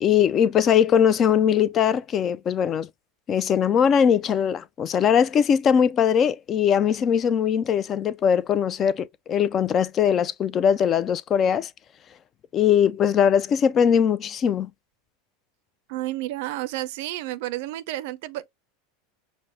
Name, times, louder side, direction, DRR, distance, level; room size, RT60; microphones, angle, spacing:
voice 1, 0.0-2.9 3.3-11.7 12.5-14.7, left 8 dB, 35° left, 0.3 m, -21 dB
voice 2, 15.9-18.5, right 16 dB, 70° right, 0.4 m, -31 dB
5.3 x 2.0 x 3.1 m
hypercardioid pair, 105°, 0 cm